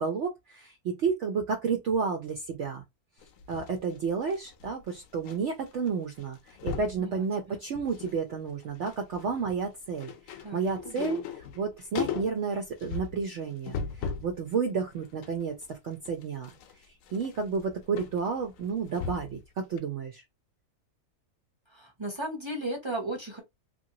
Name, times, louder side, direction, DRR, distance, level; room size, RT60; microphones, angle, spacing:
voice 1, 0.0-2.8 3.5-16.5 17.1-20.2, right 5 dB, 65° right, 0.7 m, -31 dB
sound 1, 3.2-5.4 5.6-5.9 6.2-7.0 7.5-8.2 8.5-14.4 14.8-19.4 19.8-19.9, left 7 dB, 70° left, 0.9 m, -38 dB
voice 2, 7.0-7.6 10.4-11.2 21.7-23.4, right 1 dB, 30° right, 0.5 m, -36 dB
2.8 x 2.5 x 2.7 m
omnidirectional pair, 1.6 m